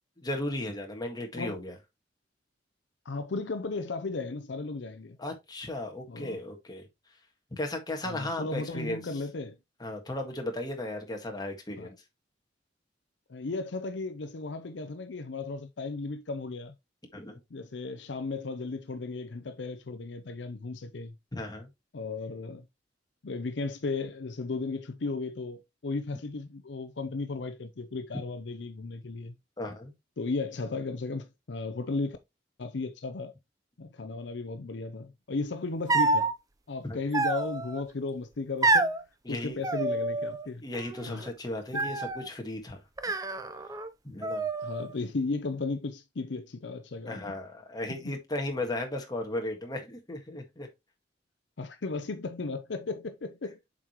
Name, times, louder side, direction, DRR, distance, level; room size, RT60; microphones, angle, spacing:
voice 1, 0.2-1.8 5.2-6.9 7.5-9.0 9.8-12.0 17.1-17.4 21.3-21.7 29.6-29.9 36.8-37.0 39.3-39.6 40.5-42.8 44.0-44.5 47.1-50.7, left 1 dB, 20° left, 1.6 m, -35 dB
voice 2, 3.1-5.2 6.1-6.4 8.1-9.6 11.8-11.9 13.3-16.7 17.5-21.1 21.9-22.7 23.2-29.4 30.2-32.2 32.6-33.3 33.8-36.3 36.7-39.0 39.3-40.6 41.1-41.2 41.7-41.8 44.6-47.2 48.0-48.1 50.3-50.4 51.6-53.6, left 3 dB, 65° left, 0.6 m, -35 dB
sound 1, 35.9-36.3 37.1-37.8 38.6-39.0 39.6-40.5 40.7-41.3 41.7-42.3 43.0-43.9 44.2-44.9, right 2 dB, 20° right, 0.6 m, -28 dB
7.4 x 4.9 x 3.0 m
head